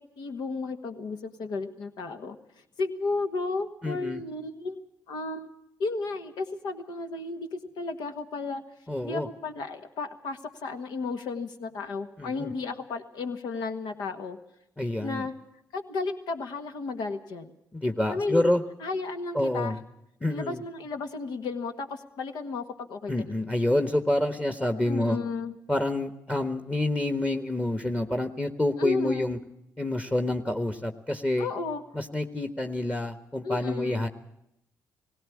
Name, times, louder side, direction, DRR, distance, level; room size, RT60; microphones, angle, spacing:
voice 1, 0.2-2.4 2.8-4.8 5.1-5.5 5.8-8.6 9.0-14.4 15.0-15.3 15.7-17.5 18.0-18.5 18.8-19.8 20.3-23.1 24.9-25.5 28.8-29.3 31.4-31.8 33.4-34.0, left 3 dB, 75° left, 6 dB, 1.5 m, -33 dB
voice 2, 3.8-4.2 8.9-9.3 12.2-12.5 14.8-15.3 17.7-18.6 19.3-19.8 20.2-20.6 23.1-25.2 25.7-29.4 29.8-31.5 31.9-34.1, left 1 dB, 15° left, 7 dB, 1.4 m, -27 dB
18.5 x 17.0 x 8.5 m, 0.81 s
hypercardioid pair, 50°, 7 cm